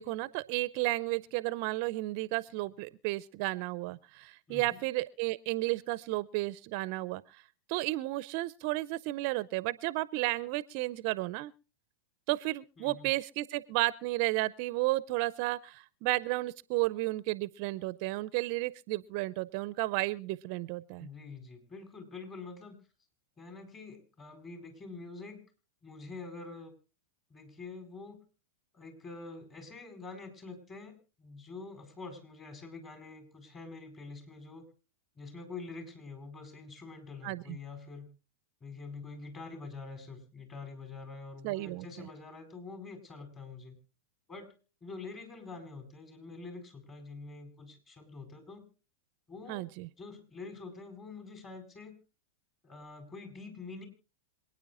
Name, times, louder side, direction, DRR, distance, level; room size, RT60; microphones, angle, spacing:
voice 1, 0.0-7.4 7.7-11.5 12.3-21.1 37.2-37.6 41.4-42.1 49.5-49.9, right 20 dB, 50° right, 19 dB, 0.5 m, -33 dB
voice 2, 4.5-4.8 12.8-13.1 21.0-22.8 23.4-25.4 25.8-26.7 27.3-28.2 28.7-34.7 35.2-38.1 38.6-43.8 44.3-44.5 44.8-48.7 49.3-49.6 50.0-52.0 52.6-53.9, left 3 dB, 25° left, 6 dB, 4.5 m, -46 dB
27.0 x 9.5 x 2.5 m, 0.34 s
hypercardioid pair, 100°, 0 cm